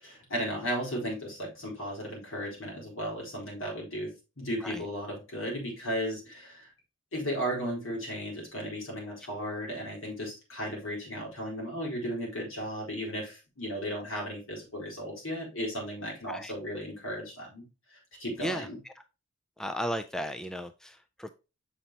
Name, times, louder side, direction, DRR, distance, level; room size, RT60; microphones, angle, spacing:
voice 1, 0.0-6.7 7.1-17.6 17.9-18.8, equal, 70° left, -2 dB, 4.1 m, -35 dB
voice 2, 19.6-21.3, equal, 5° left, 7 dB, 0.4 m, -35 dB
7.2 x 5.4 x 2.9 m, 0.29 s
head